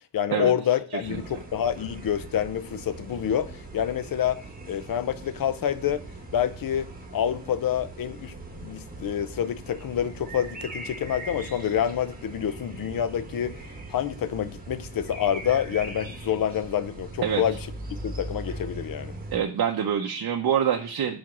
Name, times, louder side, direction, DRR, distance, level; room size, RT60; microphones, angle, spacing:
voice 1, 0.1-4.4 4.7-6.0 6.3-13.6 13.9-19.1, left 9 dB, 55° left, 0.6 m, -27 dB
sound 1, 1.0-19.4, right 2 dB, 20° right, 1.1 m, -40 dB
voice 2, 19.3-21.2, right 8 dB, 55° right, 0.7 m, -25 dB
4.8 x 4.2 x 5.9 m
wide cardioid pair, 140°, 43 cm